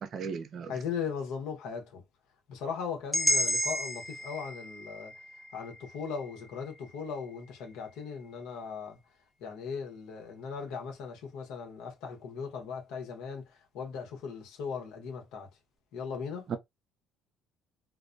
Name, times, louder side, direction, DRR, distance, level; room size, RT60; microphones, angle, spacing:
voice 1, 0.0-0.7 16.5-16.6, right 6 dB, 50° right, 0.5 m, -36 dB
voice 2, 0.7-2.0 2.5-5.1 5.5-9.0 9.4-13.5 13.7-15.5 15.9-16.5, left 6 dB, 80° left, 1.0 m, -38 dB
sound 1, 3.1-7.2, equal, 5° left, 0.7 m, -32 dB
2.2 x 2.2 x 2.5 m
cardioid pair, 100°, 0 cm